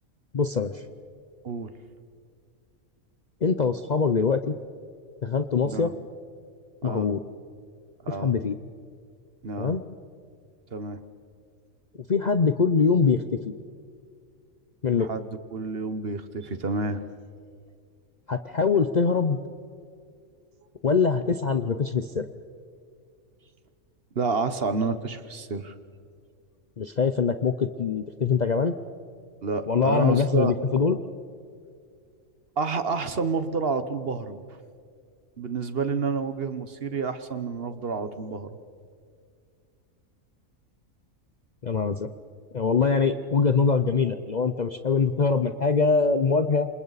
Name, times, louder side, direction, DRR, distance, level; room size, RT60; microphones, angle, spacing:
voice 1, 0.3-0.8 3.4-4.5 5.2-5.9 6.8-7.2 8.2-8.5 9.6-9.8 12.1-13.5 14.8-15.1 18.3-19.4 20.8-22.3 26.8-28.7 29.7-31.0 41.6-42.1 42.5-46.7, left 5 dB, 45° left, 9 dB, 0.6 m, -23 dB
voice 2, 6.8-7.1 8.0-8.3 9.4-9.8 10.7-11.0 15.0-17.0 24.1-25.7 29.4-30.7 32.6-34.4 35.4-38.5, right 4 dB, 50° right, 11 dB, 1.2 m, -29 dB
27.5 x 27.5 x 4.1 m, 2.2 s
omnidirectional pair, 1.4 m